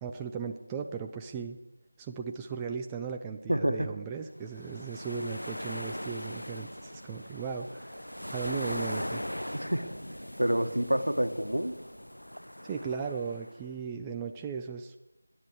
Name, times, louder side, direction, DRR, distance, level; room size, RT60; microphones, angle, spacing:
voice 1, 0.0-1.6 2.0-9.2 12.7-15.0, right 6 dB, 10° right, 4 dB, 0.5 m, -37 dB
voice 2, 3.5-3.9 9.6-10.0 10.4-11.7, equal, 80° right, 8 dB, 1.5 m, -28 dB
sound 1, 4.4-13.6, equal, 85° left, 0.7 m, -40 dB
26.0 x 9.9 x 4.8 m, 1.1 s
figure-of-eight pair, 165°, 0 cm